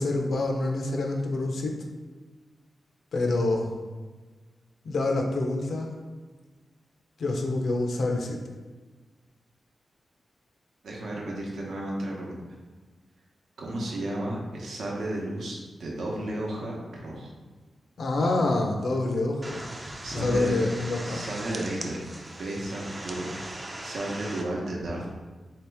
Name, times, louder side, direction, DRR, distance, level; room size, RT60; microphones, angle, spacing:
voice 1, 0.0-1.8 3.1-3.8 4.8-6.0 7.2-8.4 18.0-19.6 20.1-21.2, left 2 dB, 65° left, 2 dB, 0.5 m, -27 dB
voice 2, 10.8-12.4 13.6-17.3 18.2-18.4 20.0-20.6 21.0-22.0 22.4-25.1, right 1 dB, 80° right, -2 dB, 0.8 m, -33 dB
sound 1, 19.4-24.4, right 1 dB, 25° right, 0.4 m, -39 dB
3.9 x 2.8 x 3.4 m, 1.3 s
wide cardioid pair, 120°, 0 cm